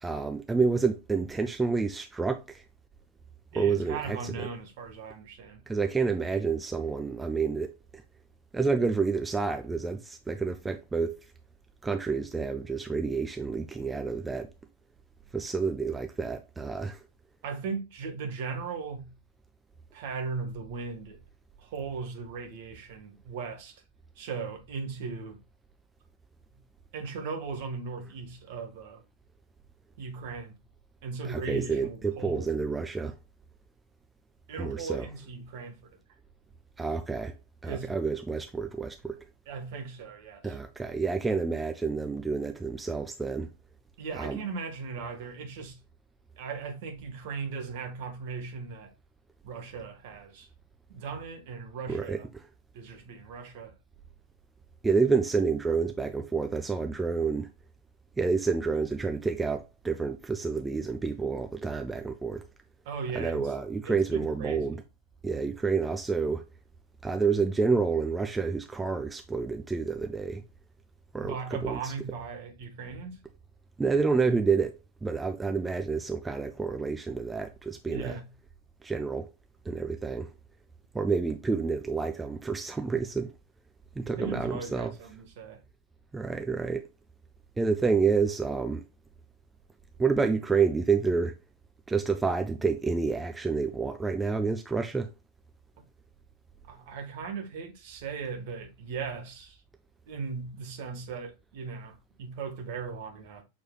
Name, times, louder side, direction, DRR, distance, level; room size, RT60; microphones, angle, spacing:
voice 1, 0.0-2.6 3.5-4.5 5.7-7.8 8.5-11.3 11.8-14.5 15.3-17.0 31.2-33.2 34.6-35.1 36.8-37.3 37.6-39.3 40.4-43.5 44.2-44.4 51.9-52.2 54.8-57.5 58.2-62.5 63.1-64.8 65.2-66.5 67.0-70.4 71.1-71.9 73.8-78.2 78.8-79.3 79.7-80.3 80.9-83.3 84.0-84.9 86.1-86.9 87.6-88.8 90.0-91.4 91.9-95.1, right 4 dB, 10° right, 0.4 m, -29 dB
voice 2, 3.5-5.7 17.4-19.1 19.9-21.2 21.6-23.8 24.2-25.4 26.9-29.0 30.0-30.6 31.0-32.5 34.5-36.0 37.6-37.9 39.5-40.6 44.0-45.8 46.4-48.9 49.4-50.5 50.9-52.3 52.7-53.7 62.8-63.5 63.8-64.8 71.2-73.2 77.9-78.3 84.2-85.6 96.6-99.6 100.1-103.4, right 5 dB, 50° right, 1.2 m, -38 dB
6.2 x 3.2 x 2.3 m
figure-of-eight pair, 90°, 0 cm